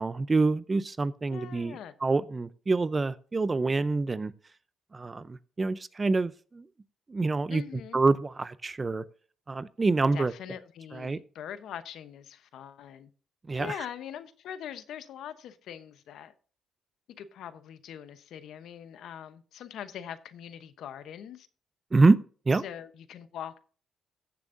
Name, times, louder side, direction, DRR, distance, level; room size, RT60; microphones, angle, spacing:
voice 1, 0.0-4.3 4.9-6.7 7.1-7.6 7.9-9.0 9.5-10.3 10.9-11.2 13.5-13.9 21.9-22.2 22.5-22.6, right 3 dB, 25° right, 0.6 m, -26 dB
voice 2, 1.3-1.9 7.5-8.0 10.1-13.1 13.6-16.3 17.2-21.5 22.6-23.6, left 9 dB, 75° left, 0.9 m, -42 dB
14.5 x 7.0 x 2.6 m
cardioid pair, 90°, 0 cm